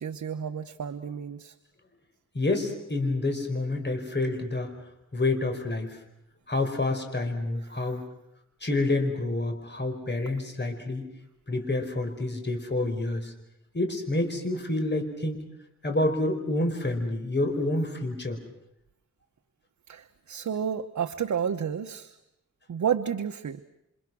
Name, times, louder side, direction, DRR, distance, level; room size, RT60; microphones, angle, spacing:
voice 1, 0.0-1.5 7.7-7.9 19.9-22.2 22.7-23.6, right 8 dB, 70° right, 6 dB, 1.0 m, -31 dB
voice 2, 2.3-4.8 5.1-6.0 6.5-8.0 8.6-11.0 11.5-13.3 13.7-15.4 15.8-18.4, left 2 dB, 35° left, 5 dB, 5.0 m, -28 dB
29.0 x 26.5 x 6.3 m, 0.85 s
wide cardioid pair, 85°, 31 cm